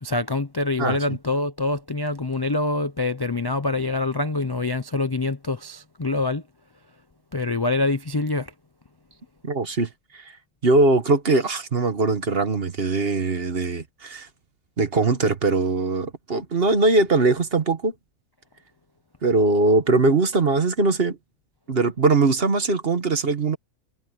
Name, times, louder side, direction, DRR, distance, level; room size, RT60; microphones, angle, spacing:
voice 1, 0.0-6.5 7.3-8.5, left 2 dB, 35° left, 0.3 m, -25 dB
voice 2, 9.4-10.2 10.6-14.3 14.8-17.9 19.2-21.2 21.7-23.6, right 3 dB, 40° right, 1.5 m, -21 dB
omnidirectional pair, 1.6 m